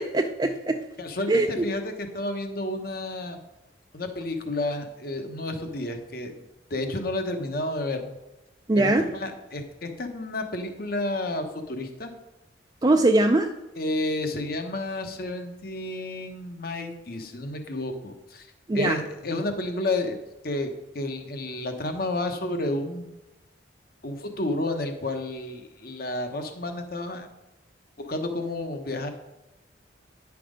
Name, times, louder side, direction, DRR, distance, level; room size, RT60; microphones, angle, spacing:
voice 1, 0.0-0.8 1.3-1.6 8.7-9.1 12.8-13.5 18.7-19.0, right 2 dB, 20° right, 4 dB, 0.4 m, -21 dB
voice 2, 1.0-3.4 3.9-6.4 6.7-8.0 8.7-12.1 13.8-18.5 18.7-20.2 20.4-23.1 24.0-27.3 28.0-29.1, left 2 dB, 55° left, 6 dB, 1.0 m, -31 dB
9.9 x 5.9 x 5.1 m, 0.99 s
head